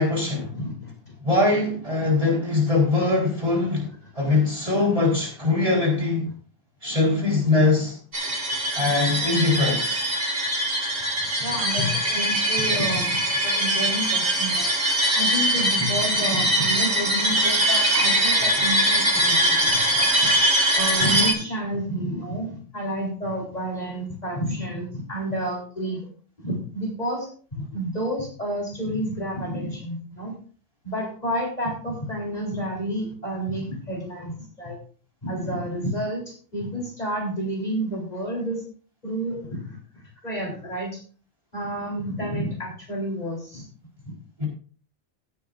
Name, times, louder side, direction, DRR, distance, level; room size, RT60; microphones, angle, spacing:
voice 1, 0.0-0.5 1.2-6.3 6.8-8.0 8.7-10.0 44.4-44.5, left 3 dB, 30° right, 4.3 m, -22 dB
voice 2, 0.5-1.2 11.4-14.8 15.1-20.3 20.8-26.0 26.4-30.3 30.8-34.8 35.2-38.6 39.0-40.9 41.5-43.7, equal, 35° left, 3.8 m, -30 dB
sound 1, 8.1-21.3, right 1 dB, 65° right, 2.8 m, -22 dB
17.0 x 9.0 x 2.5 m
omnidirectional pair, 1.2 m